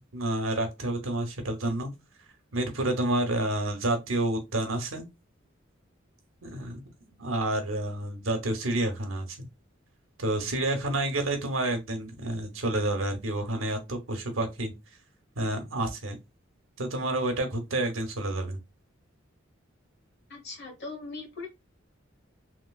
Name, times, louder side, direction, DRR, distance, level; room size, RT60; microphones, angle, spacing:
voice 1, 0.0-1.9 2.5-5.0 6.4-9.5 10.2-14.7 15.4-16.2 16.8-18.6, right 1 dB, 90° right, 1.0 m, -29 dB
voice 2, 20.3-21.5, left 3 dB, 60° left, 1.3 m, -40 dB
3.0 x 3.0 x 2.3 m
head